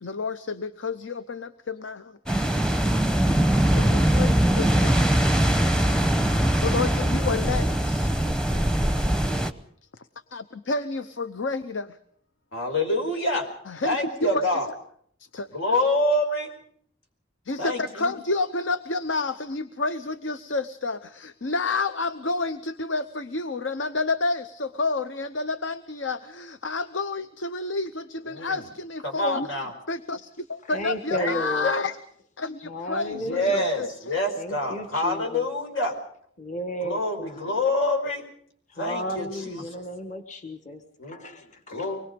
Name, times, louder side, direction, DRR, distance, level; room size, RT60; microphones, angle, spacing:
voice 1, 0.0-2.2 3.6-5.0 6.6-8.1 10.3-12.0 13.7-14.4 15.2-15.5 17.4-31.9 32.4-34.3, left 3 dB, 70° left, 12 dB, 0.8 m, -30 dB
sound 1, 2.3-9.5, right 1 dB, 5° left, 0.9 m, -22 dB
voice 2, 12.5-13.5 13.8-14.7 15.5-16.5 17.6-18.1 28.3-28.6 29.0-29.7 31.1-31.8 33.2-35.9 36.8-37.1 37.4-38.2 38.8-39.6 41.0-41.4 41.7-42.0, left 1 dB, 85° left, 4 dB, 4.9 m, -26 dB
voice 3, 30.6-31.7 32.6-33.7 34.4-35.5 36.5-37.0 38.7-40.8 41.1-42.0, equal, 40° left, 7 dB, 1.5 m, -33 dB
24.5 x 21.0 x 5.2 m, 0.64 s
head